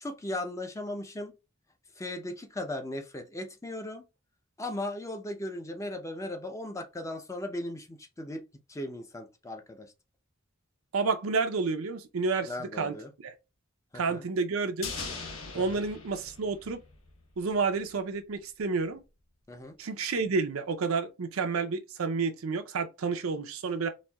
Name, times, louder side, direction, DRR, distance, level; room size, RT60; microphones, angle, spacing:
voice 1, 0.0-1.3 2.0-4.0 4.6-8.4 8.7-9.9 12.4-13.1 13.9-14.2 15.5-15.8 19.5-19.8, left 1 dB, 15° left, 0.5 m, -37 dB
voice 2, 10.9-13.0 13.2-13.3 13.9-14.9 15.5-16.8 17.4-19.0 19.8-23.9, right 4 dB, 85° right, 0.5 m, -30 dB
sound 1, 14.8-17.2 17.5-17.6, left 4 dB, 75° left, 1.0 m, -40 dB
4.1 x 2.7 x 2.2 m
head